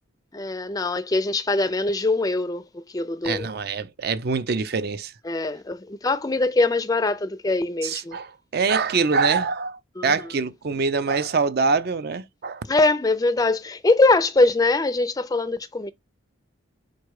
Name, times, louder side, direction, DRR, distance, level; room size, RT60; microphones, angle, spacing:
voice 1, 0.3-3.5 5.2-8.2 10.0-10.1 12.7-15.9, left 2 dB, 20° left, 0.4 m, -22 dB
voice 2, 3.2-5.1 7.8-12.6, right 4 dB, 50° right, 0.5 m, -24 dB
4.8 x 2.2 x 4.7 m
head